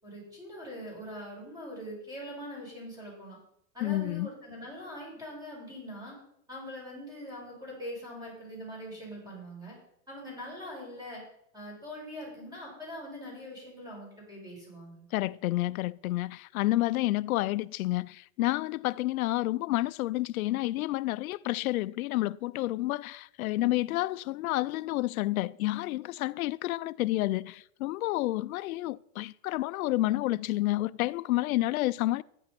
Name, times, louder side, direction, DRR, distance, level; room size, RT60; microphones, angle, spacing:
voice 1, 0.0-3.4 3.7-6.2 6.5-9.8 10.1-11.2 11.5-15.0, equal, 10° right, 8.0 m, -42 dB
voice 2, 3.8-4.3 15.1-32.2, left 17 dB, 85° left, 0.6 m, -29 dB
15.0 x 11.0 x 6.0 m
supercardioid pair, 160°, 41 cm